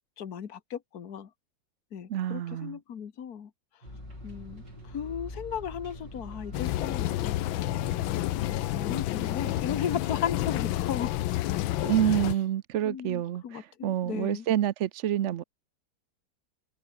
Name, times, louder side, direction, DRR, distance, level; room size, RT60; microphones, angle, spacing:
voice 1, 0.2-1.3 1.9-3.5 4.2-7.7 8.5-11.1 11.8-12.2 12.8-14.5, left 8 dB, 55° left, 1.9 m, -36 dB
voice 2, 2.1-2.8 11.8-15.4, right 11 dB, 80° right, 0.6 m, -28 dB
sound 1, 3.8-10.9, left 2 dB, 15° left, 1.4 m, -46 dB
sound 2, 3.8-9.7, right 2 dB, 65° right, 6.8 m, -48 dB
sound 3, 6.5-12.4, left 15 dB, 90° left, 1.5 m, -30 dB
omnidirectional pair, 2.1 m